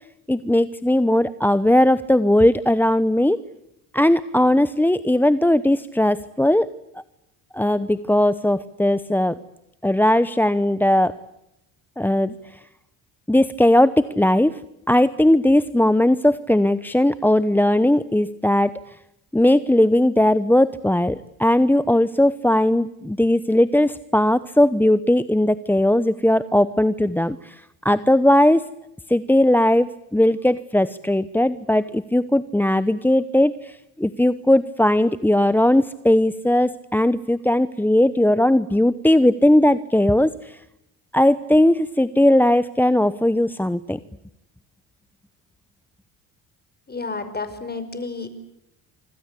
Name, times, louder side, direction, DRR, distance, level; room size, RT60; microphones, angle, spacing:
voice 1, 0.3-3.4 3.9-6.7 7.5-9.3 9.8-11.2 12.0-12.3 13.3-14.6 14.9-18.7 19.3-28.7 29.1-40.6 41.1-44.0, left 1 dB, 5° left, 15 dB, 0.9 m, -18 dB
voice 2, 46.9-48.3, left 3 dB, 25° left, 11 dB, 5.3 m, -31 dB
27.0 x 26.0 x 8.4 m, 0.87 s
supercardioid pair, 80°, 42 cm